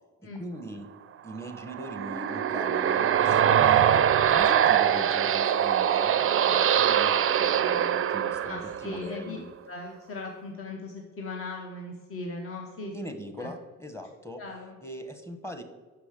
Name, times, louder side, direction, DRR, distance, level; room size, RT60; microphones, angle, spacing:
voice 1, 0.2-0.9 1.2-6.1 6.4-9.5 12.9-14.4 14.8-15.6, equal, 10° left, 6 dB, 0.9 m, -40 dB
sound 1, 1.5-9.1, right 9 dB, 45° right, 0.5 m, -23 dB
voice 2, 8.5-9.4 9.7-12.9 13.4-13.5 14.4-14.8, left 2 dB, 50° left, 1 dB, 1.0 m, -38 dB
5.7 x 5.0 x 6.6 m, 1.3 s
cardioid pair, 90°, 30 cm